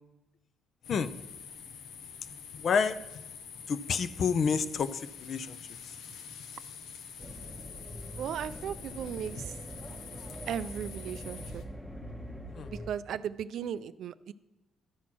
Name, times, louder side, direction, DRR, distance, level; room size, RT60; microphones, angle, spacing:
sound 1, 0.8-11.6, left 6 dB, 90° left, 0.7 m, -46 dB
voice 1, 2.6-3.0 3.7-5.6 12.5-12.7, left 6 dB, 55° left, 13 dB, 0.5 m, -29 dB
sound 2, 7.2-12.9, equal, 5° left, 0.9 m, -43 dB
voice 2, 8.2-9.6 10.5-11.6 12.7-14.3, right 9 dB, 70° right, 16 dB, 0.3 m, -36 dB
12.0 x 4.3 x 6.0 m, 0.97 s
cardioid pair, 90°, 0 cm